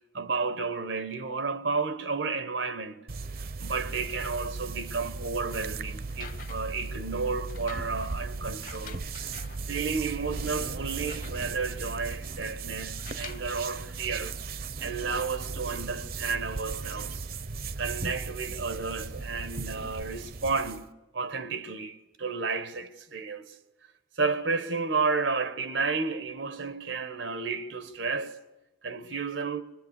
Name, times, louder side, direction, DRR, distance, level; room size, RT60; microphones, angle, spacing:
voice 1, 0.1-3.0 3.6-9.0 9.7-14.4 14.8-17.2 17.8-23.5 24.2-28.4 28.8-29.6, right 4 dB, 85° right, 1.3 m, -32 dB
sound 1, 3.1-20.9, right 4 dB, 50° right, 0.7 m, -37 dB
sound 2, 6.0-6.8 7.5-9.7 10.2-10.3 10.6-11.7 12.9-13.6 14.5-14.6, left 7 dB, 45° left, 1.0 m, -48 dB
24.5 x 21.0 x 8.2 m
head